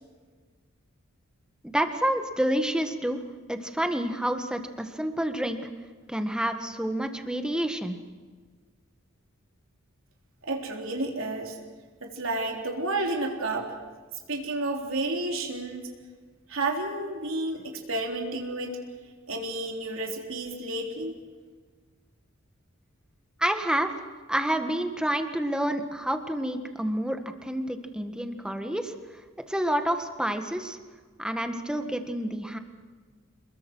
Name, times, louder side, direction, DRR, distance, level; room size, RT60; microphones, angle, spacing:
voice 1, 1.7-3.2 3.5-5.6 6.1-8.0 23.4-23.9 24.3-28.9 29.5-30.8 31.2-32.6, right 1 dB, 5° right, 6 dB, 1.6 m, -28 dB
voice 2, 10.4-11.6 12.0-13.7 14.3-15.9 16.5-18.7 19.3-21.2, right 2 dB, 80° right, 1 dB, 3.7 m, -31 dB
28.0 x 21.0 x 6.2 m, 1.5 s
head